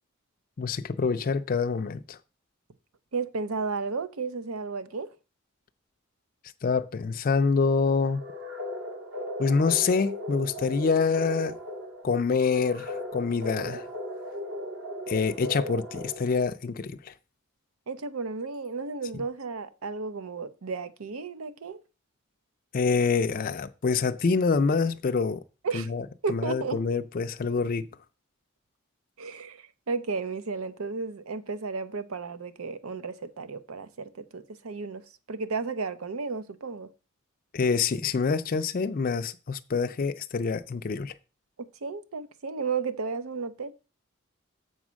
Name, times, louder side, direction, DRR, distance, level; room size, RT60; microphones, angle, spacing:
voice 1, 0.6-2.2 6.6-8.2 9.4-11.6 12.0-13.9 15.1-17.1 22.7-25.4 25.7-27.9 37.5-41.1, left 5 dB, 40° left, 0.4 m, -26 dB
voice 2, 3.1-5.2 17.9-21.8 25.6-26.0 26.2-26.8 29.2-36.9 41.6-43.7, right 4 dB, 90° right, 0.7 m, -33 dB
sound 1, 8.1-16.5, equal, 65° right, 2.0 m, -37 dB
7.2 x 4.2 x 6.2 m
head